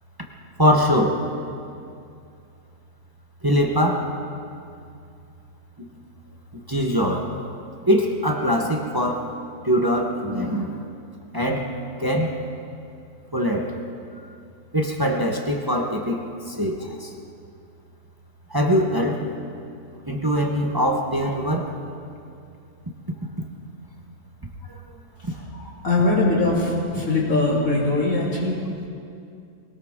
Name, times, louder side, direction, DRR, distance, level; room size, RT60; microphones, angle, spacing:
voice 1, 0.6-1.2 3.4-4.1 5.8-5.9 6.7-7.3 7.9-9.3 9.6-10.8 11.3-11.7 12.0-12.4 13.3-13.8 14.7-17.1 18.5-19.3 20.1-21.7 24.7-24.8, equal, 20° right, 1 dB, 1.0 m, -22 dB
voice 2, 25.3-28.6, left 2 dB, 85° left, -5 dB, 3.8 m, -22 dB
21.0 x 18.5 x 3.7 m, 2.5 s
omnidirectional pair, 1.4 m